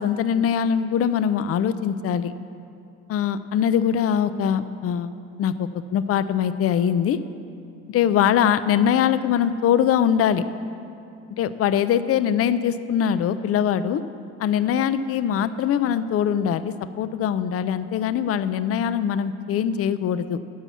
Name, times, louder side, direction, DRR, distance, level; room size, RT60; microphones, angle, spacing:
voice 1, 0.0-2.3 3.1-5.1 5.4-7.2 7.9-10.4 11.4-14.0 14.4-20.4, left 8 dB, 50° left, 14 dB, 0.5 m, -22 dB
10.5 x 5.5 x 7.2 m, 2.6 s
cardioid pair, 90°, 30 cm